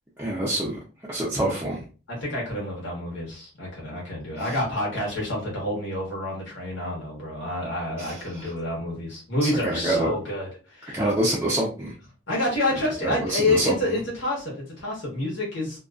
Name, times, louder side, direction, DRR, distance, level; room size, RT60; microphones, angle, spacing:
voice 1, 0.2-0.8 1.1-1.8 8.0-8.5 9.4-10.1 10.9-11.9 13.0-14.0, right 1 dB, 10° right, -6 dB, 0.4 m, -26 dB
voice 2, 2.1-11.0 12.3-15.8, left 1 dB, 80° left, -4 dB, 1.0 m, -28 dB
2.4 x 2.3 x 2.3 m, 0.36 s
head